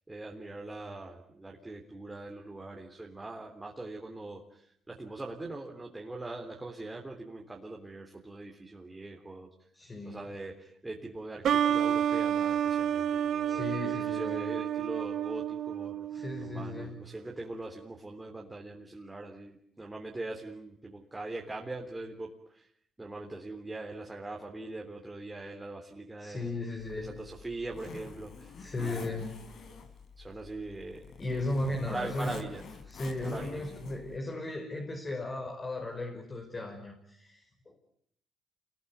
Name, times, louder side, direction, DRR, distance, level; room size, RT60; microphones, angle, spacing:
voice 1, 0.1-9.5 10.0-22.7 23.0-26.5 27.0-29.1 30.2-31.1 31.8-32.7 33.2-33.7, right 2 dB, 15° right, 0 dB, 3.6 m, -42 dB
voice 2, 9.7-10.3 13.5-14.5 16.1-16.9 26.2-27.1 28.6-29.4 31.2-32.4 32.9-37.8, left 2 dB, 30° left, 3 dB, 5.2 m, -36 dB
sound 1, 11.4-16.9, right 9 dB, 65° right, 1.7 m, -30 dB
Zipper (clothing), 26.8-34.2, left 4 dB, 60° left, 4.8 m, -47 dB
28.5 x 21.0 x 9.5 m, 0.68 s
cardioid pair, 90°, 0 cm